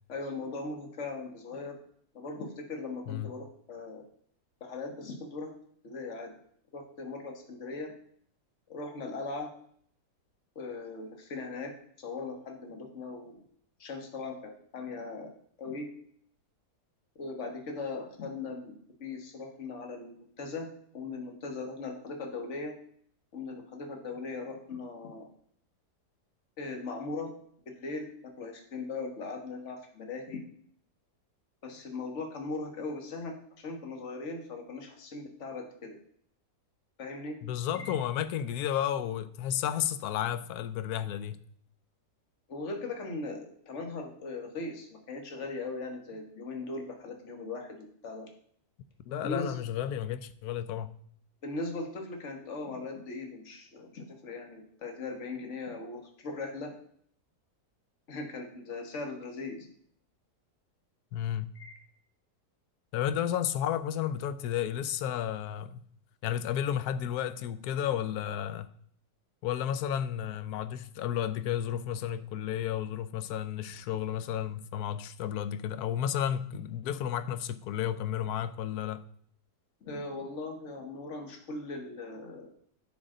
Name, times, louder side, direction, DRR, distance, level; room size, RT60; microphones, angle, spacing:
voice 1, 0.1-1.8 2.1-4.0 4.6-5.5 5.8-6.3 6.7-7.9 8.7-9.5 10.5-11.7 12.0-13.4 13.8-15.3 15.6-15.9 17.2-20.7 20.9-22.7 23.3-25.3 26.6-27.3 27.7-28.1 28.4-30.4 31.6-36.0 37.0-37.3 37.7-37.9 42.5-48.3 49.2-49.6 51.4-56.7 58.1-59.7 61.6-61.8 79.8-82.5, left 3 dB, 45° left, 1.7 m, -39 dB
voice 2, 37.4-41.4 49.1-50.9 61.1-61.5 62.9-65.8 66.2-68.7 69.4-79.0, left 10 dB, 75° left, 1.1 m, -32 dB
10.5 x 6.2 x 3.8 m
omnidirectional pair, 1.8 m